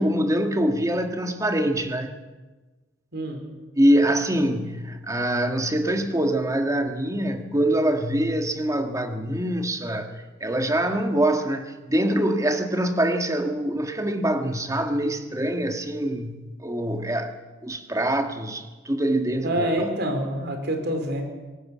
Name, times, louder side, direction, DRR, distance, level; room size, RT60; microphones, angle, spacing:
voice 1, 0.0-2.2 3.8-17.3 17.6-19.7, right 1 dB, 15° right, 1.8 m, -24 dB
voice 2, 3.1-3.4 19.4-21.2, right 1 dB, 55° right, 4.3 m, -26 dB
24.5 x 18.5 x 7.5 m
head